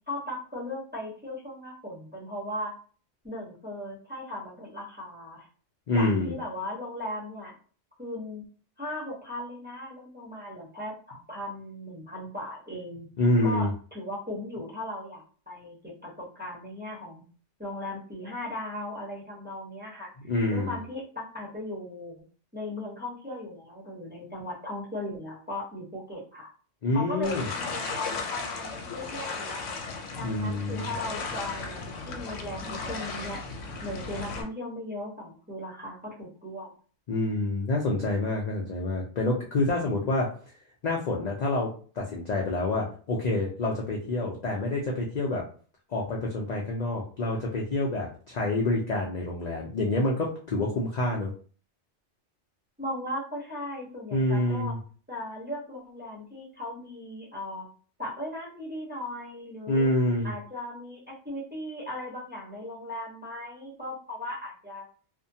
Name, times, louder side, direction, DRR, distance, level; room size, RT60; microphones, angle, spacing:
voice 1, 0.1-2.7 3.2-5.5 5.9-7.5 8.0-8.5 8.8-13.1 13.4-15.8 16.0-17.2 17.6-20.1 20.5-22.1 22.5-26.5 26.9-29.8 30.2-33.4 33.8-36.7 52.8-54.7 55.1-57.7 58.0-59.9 60.2-64.8, left 1 dB, 10° right, -4 dB, 0.7 m, -37 dB
voice 2, 5.9-6.4 13.2-13.7 20.3-20.8 26.8-27.5 30.2-30.9 37.1-40.3 40.8-45.4 45.9-51.3 54.1-54.8 59.7-60.3, left 2 dB, 60° left, -2 dB, 0.4 m, -27 dB
sound 1, 27.2-34.4, left 4 dB, 90° left, 0.9 m, -36 dB
2.5 x 2.1 x 2.7 m, 0.41 s
omnidirectional pair, 1.2 m